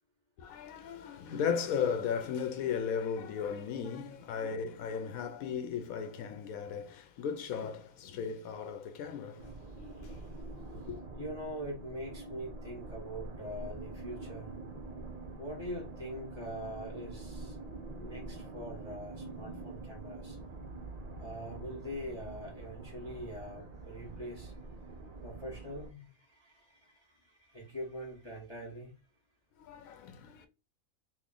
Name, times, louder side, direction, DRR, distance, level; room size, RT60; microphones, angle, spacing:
voice 1, 0.4-9.5 10.0-10.1 10.5-11.0 29.6-30.5, left 7 dB, 85° left, 1.0 m, -36 dB
sound 1, 9.4-25.9, right 2 dB, 45° right, 0.5 m, -45 dB
voice 2, 11.1-14.5 15.4-17.6 17.9-20.4 21.2-24.6 25.2-28.9, equal, 25° left, 0.9 m, -43 dB
3.1 x 2.5 x 3.7 m
omnidirectional pair, 1.4 m